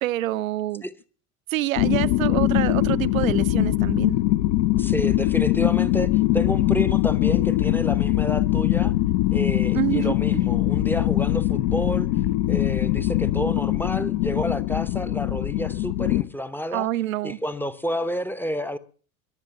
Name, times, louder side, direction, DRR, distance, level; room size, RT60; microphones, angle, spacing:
voice 1, 0.0-0.8 1.5-4.2 9.7-10.1 16.7-17.4, right 15 dB, 65° right, 0.7 m, -26 dB
sound 1, 1.8-16.2, left 15 dB, 50° left, 0.9 m, -22 dB
voice 2, 4.8-8.9 9.3-12.1 12.5-16.9 17.2-18.8, equal, 5° left, 0.8 m, -29 dB
22.5 x 8.2 x 6.9 m
figure-of-eight pair, 80°, 44 cm